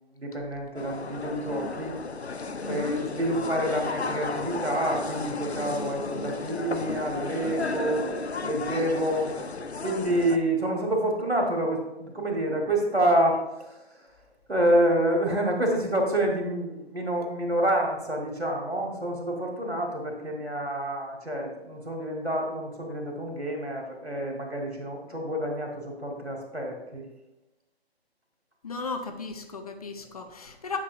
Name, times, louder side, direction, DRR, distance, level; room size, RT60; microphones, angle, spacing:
voice 1, 0.2-2.0 2.6-8.1 8.4-9.3 9.8-14.0 14.5-27.0, right 1 dB, 85° right, 1 dB, 1.7 m, -28 dB
sound 1, 0.7-10.4, left 4 dB, 90° left, 0.6 m, -34 dB
voice 2, 2.6-3.1 28.6-30.8, left 4 dB, 35° left, 6 dB, 0.6 m, -35 dB
8.3 x 5.3 x 2.7 m, 0.94 s
figure-of-eight pair, 140°, 32 cm